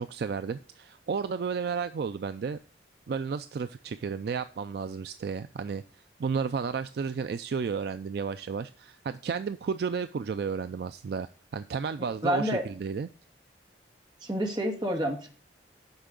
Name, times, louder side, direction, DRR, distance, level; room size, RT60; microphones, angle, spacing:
voice 1, 0.0-2.6 3.1-5.8 6.2-13.1, right 5 dB, 55° right, 11 dB, 0.3 m, -32 dB
voice 2, 12.2-12.6 14.2-15.3, equal, 25° right, 1 dB, 1.6 m, -28 dB
8.1 x 5.7 x 3.8 m, 0.41 s
head